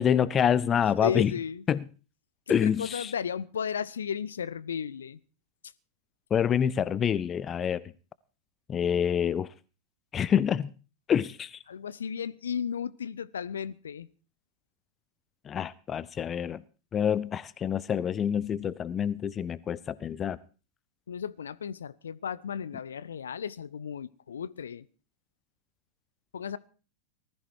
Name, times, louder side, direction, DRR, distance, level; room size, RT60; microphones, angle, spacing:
voice 1, 0.0-1.3 1.7-1.8 2.5-3.1 6.3-7.8 8.7-9.5 10.1-10.7 11.1-11.6 15.5-16.6 16.9-20.4, left 8 dB, 25° left, 0.7 m, -27 dB
voice 2, 1.0-1.6 2.5-5.2 11.7-14.1 21.1-24.9 26.3-26.6, left 7 dB, 70° left, 0.8 m, -34 dB
19.5 x 13.5 x 4.7 m
figure-of-eight pair, 90°, 0 cm